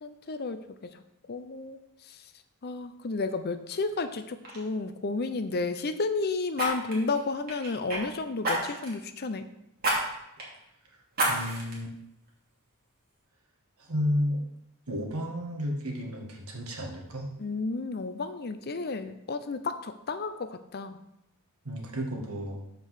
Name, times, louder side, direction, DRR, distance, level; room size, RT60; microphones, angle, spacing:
voice 1, 0.0-1.0 1.3-1.8 2.1-2.2 2.6-9.5 17.4-21.0, left 3 dB, 45° left, 10 dB, 0.6 m, -32 dB
Fire, 3.9-4.1 4.4-4.6 6.5-8.0 8.4-9.0 9.8-10.0 10.4-10.5 11.1-11.7 12.3-12.4, right 1 dB, 45° right, 2.6 m, -29 dB
voice 2, 11.3-11.9 13.8-14.4 14.9-17.3 21.6-22.6, equal, 80° right, 0 dB, 1.9 m, -32 dB
7.7 x 5.1 x 6.4 m, 0.80 s
head